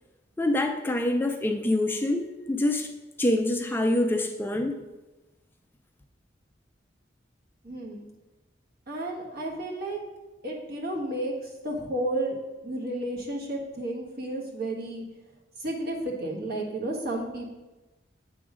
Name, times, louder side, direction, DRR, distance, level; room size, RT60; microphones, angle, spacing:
voice 1, 0.4-2.9 3.2-4.7, left 1 dB, 10° left, 5 dB, 0.4 m, -25 dB
voice 2, 7.6-8.1 8.9-10.0 10.4-11.3 11.6-12.3 12.6-15.0 15.6-17.5, right 1 dB, 55° right, -1 dB, 1.4 m, -32 dB
8.6 x 3.7 x 5.0 m, 1.1 s
head